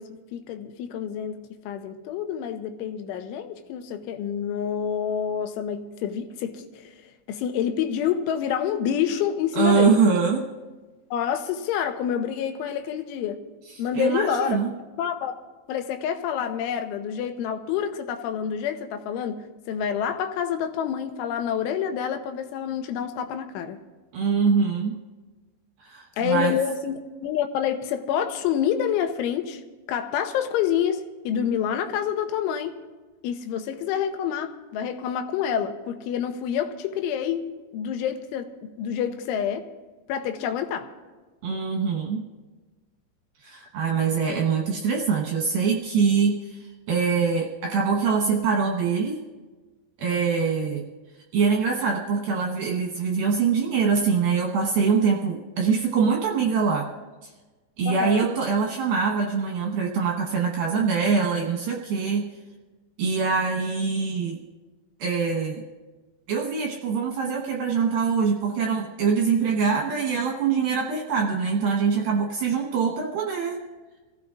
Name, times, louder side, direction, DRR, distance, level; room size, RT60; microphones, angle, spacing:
voice 1, 0.0-6.9 7.3-10.0 11.1-13.4 13.8-14.6 15.0-15.4 15.7-23.8 26.2-29.6 29.9-32.8 33.2-39.7 40.1-40.9 57.9-58.3, left 8 dB, 80° left, 3.1 m, -28 dB
voice 2, 9.6-10.4 13.9-14.7 24.1-25.0 25.8-26.5 41.4-42.2 43.4-49.2 50.0-50.8 51.3-56.9 57.8-62.2 63.0-64.4 65.0-65.6 66.3-73.6, right 5 dB, 70° right, 2.3 m, -24 dB
27.5 x 16.0 x 2.5 m
omnidirectional pair, 5.6 m